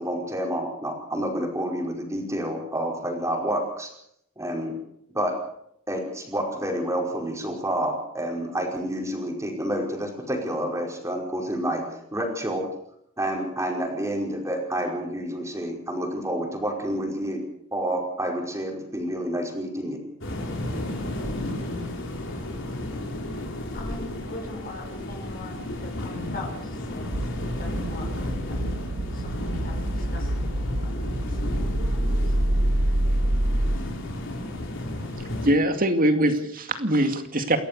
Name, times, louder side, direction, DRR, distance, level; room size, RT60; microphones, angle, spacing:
voice 1, 0.0-3.9 4.4-4.8 5.1-5.3 5.9-11.8 12.1-12.6 13.2-17.4 17.7-20.0, right 1 dB, 15° right, 1 dB, 5.1 m, -29 dB
sound 1, 20.2-35.5, left 1 dB, 65° left, 4.8 m, -33 dB
voice 2, 23.7-27.3 27.6-28.7 29.1-32.4, left 2 dB, 45° left, 2 dB, 6.2 m, -42 dB
sound 2, 27.1-33.8, right 1 dB, 90° right, 1.7 m, -26 dB
voice 3, 35.4-37.6, right 1 dB, 45° right, 7 dB, 2.4 m, -22 dB
28.5 x 13.5 x 6.9 m, 0.74 s
head